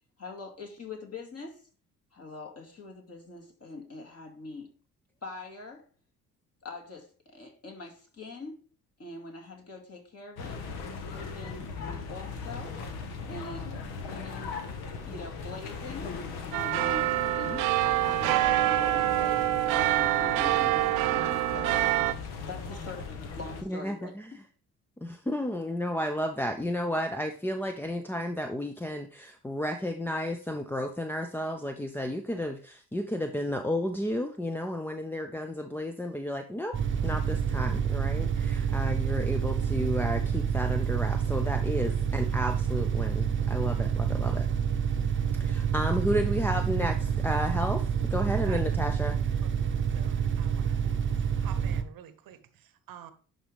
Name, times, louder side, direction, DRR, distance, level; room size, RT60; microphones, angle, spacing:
voice 1, 0.2-1.6 2.1-4.7 5.2-5.8 6.6-8.6 9.0-10.6 10.9-12.8 13.3-14.6 15.0-16.2 16.7-17.7 18.0-19.4 19.7-21.8 22.4-24.1, left 3 dB, 35° left, 2.3 m, -43 dB
sound 1, 10.4-23.6, left 5 dB, 65° left, 1.3 m, -38 dB
sound 2, 16.5-22.1, right 16 dB, 75° right, 0.6 m, -26 dB
voice 2, 23.7-24.3 25.0-44.5 45.4-49.4, left 1 dB, 5° left, 0.5 m, -32 dB
sound 3, 36.7-51.8, right 7 dB, 30° right, 0.9 m, -28 dB
voice 3, 48.4-48.8 49.4-50.9 51.4-53.1, right 10 dB, 55° right, 1.0 m, -49 dB
11.0 x 3.9 x 3.4 m
figure-of-eight pair, 50°, 42 cm